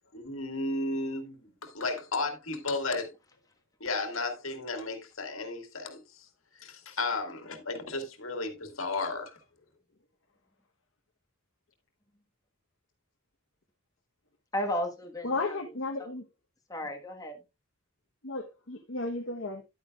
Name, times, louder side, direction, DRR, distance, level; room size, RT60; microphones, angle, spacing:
voice 1, 0.1-3.1 3.8-6.3 6.6-9.3, left 3 dB, 80° left, 1.9 m, -34 dB
voice 2, 14.5-16.1 16.7-17.4, left 1 dB, 15° left, 1.4 m, -35 dB
voice 3, 15.2-16.2 18.2-19.6, left 3 dB, 65° left, 1.0 m, -34 dB
10.5 x 9.1 x 2.3 m
head